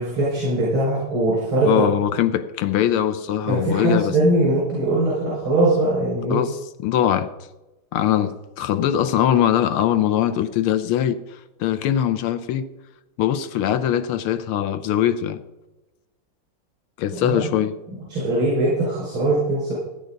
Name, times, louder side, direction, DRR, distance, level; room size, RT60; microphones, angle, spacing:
voice 1, 0.0-1.8 3.5-6.4 17.1-17.5 18.1-19.7, right 1 dB, 80° right, 5.9 m, -21 dB
voice 2, 1.6-4.2 6.3-7.3 7.9-11.2 11.6-12.7 13.2-15.4 17.0-17.7, left 10 dB, 85° left, 1.7 m, -21 dB
15.0 x 10.0 x 3.9 m
omnidirectional pair, 2.3 m